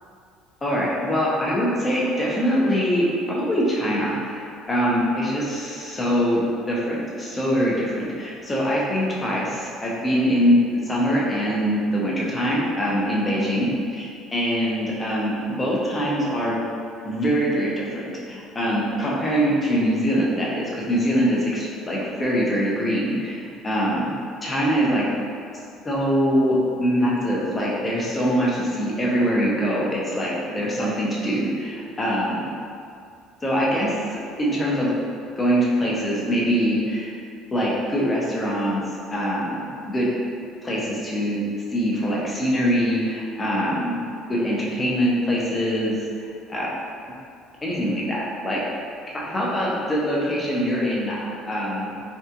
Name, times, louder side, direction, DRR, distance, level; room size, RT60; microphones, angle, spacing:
voice 1, 0.6-16.6 17.0-24.1 24.4-25.1 25.8-32.5 33.4-34.9 35.4-37.1 37.5-40.1 40.6-44.0 44.3-46.7 47.6-48.6 49.1-51.9, equal, 15° left, -5 dB, 0.5 m, -23 dB
3.4 x 2.3 x 2.8 m, 2.4 s
cardioid pair, 160°, 0 cm